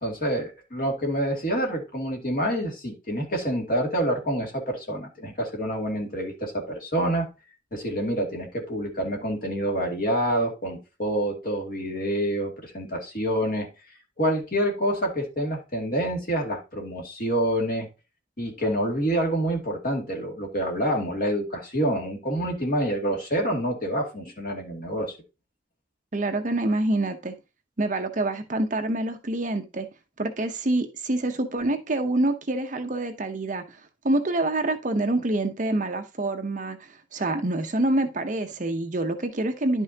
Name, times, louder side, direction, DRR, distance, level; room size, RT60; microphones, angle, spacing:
voice 1, 0.0-7.3 7.7-13.7 14.2-17.9 18.4-25.1, right 1 dB, 45° left, 1 dB, 2.3 m, -27 dB
voice 2, 26.1-27.3 27.8-29.9 30.2-33.8 34.0-39.8, right 2 dB, 40° right, 6 dB, 0.8 m, -26 dB
11.0 x 5.5 x 2.8 m, 0.28 s
head